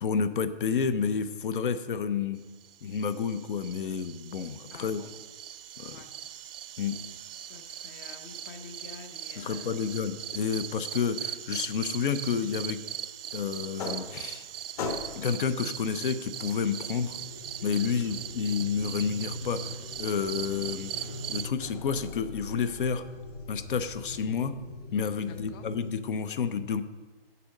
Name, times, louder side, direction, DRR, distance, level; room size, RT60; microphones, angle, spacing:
voice 1, 0.0-2.4 2.8-5.0 5.8-6.0 6.8-7.0 9.4-12.8 13.3-14.5 15.2-17.2 17.6-23.0 23.5-24.5 24.9-26.8, left 6 dB, 60° left, 12 dB, 0.7 m, -30 dB
sound 1, 2.6-21.5, right 10 dB, 70° right, 0.5 m, -40 dB
voice 2, 4.7-5.1 5.9-6.1 7.4-9.9 17.8-18.2 25.2-25.6, left 5 dB, 25° left, 7 dB, 0.6 m, -48 dB
sound 2, 13.5-14.5 14.8-15.4 16.5-25.9, left 3 dB, 40° left, 1.2 m, -41 dB
7.2 x 6.8 x 6.5 m, 1.3 s
hypercardioid pair, 145°, 30 cm